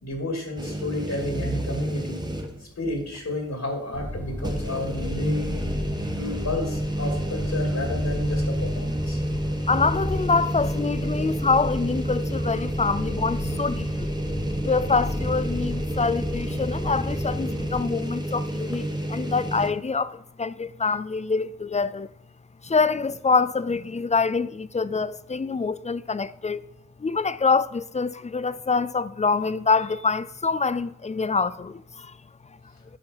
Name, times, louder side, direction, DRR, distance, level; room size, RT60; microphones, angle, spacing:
voice 1, 0.0-2.2 2.6-5.7 6.2-9.2 14.2-14.7, left 1 dB, 60° left, 2.4 m, -31 dB
sound 1, 0.6-2.7 3.1-3.2 4.4-19.7, right 1 dB, 15° right, 1.1 m, -30 dB
sound 2, 3.9-17.8, left 1 dB, 5° left, 1.4 m, -33 dB
voice 2, 9.7-14.1 14.6-22.1 22.6-26.6 27.0-32.1, left 4 dB, 25° left, 0.4 m, -25 dB
8.9 x 4.3 x 5.6 m
cardioid pair, 50°, 31 cm